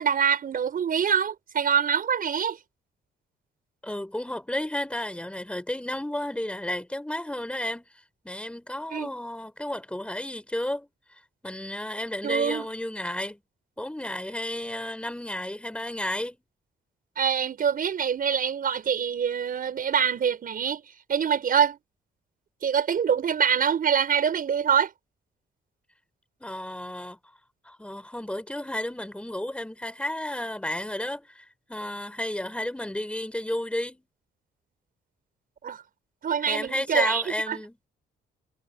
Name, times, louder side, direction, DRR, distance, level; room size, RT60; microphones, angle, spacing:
voice 1, 0.0-2.6 8.9-9.1 12.2-12.7 17.2-20.8 21.1-21.8 22.6-24.9 35.6-35.8 36.2-37.6, right 7 dB, 50° right, 5.8 m, -25 dB
voice 2, 3.8-7.9 8.2-10.9 11.4-13.4 13.8-16.4 26.4-27.2 27.6-34.1 36.5-37.9, left 1 dB, 5° left, 7.2 m, -32 dB
cardioid pair, 110°, 19 cm